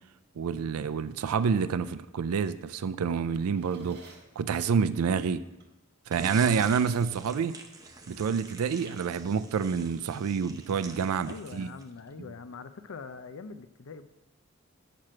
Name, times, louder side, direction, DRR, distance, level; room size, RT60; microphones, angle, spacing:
voice 1, 0.4-4.0 4.4-5.4 6.1-7.6 8.1-11.7, right 6 dB, 90° right, 13 dB, 0.4 m, -28 dB
Drawer open or close, 3.1-4.4 5.6-5.8 6.2-7.7, right 2 dB, 50° right, 1.4 m, -53 dB
sound 1, 6.1-12.0, right 3 dB, 15° right, 0.6 m, -46 dB
voice 2, 6.4-6.9 11.2-14.1, left 4 dB, 70° left, 11 dB, 0.5 m, -44 dB
6.7 x 5.9 x 7.4 m, 0.95 s
head